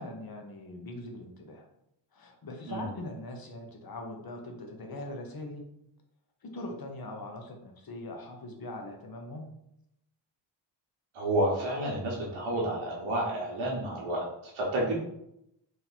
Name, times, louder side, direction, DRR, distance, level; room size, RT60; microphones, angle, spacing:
voice 1, 0.0-1.7 2.1-5.6 6.4-9.5, left 1 dB, 45° left, 3 dB, 0.9 m, -41 dB
voice 2, 11.1-14.9, right 1 dB, 85° right, -4 dB, 1.1 m, -30 dB
3.1 x 2.9 x 4.1 m, 0.79 s
cardioid pair, 70°, 49 cm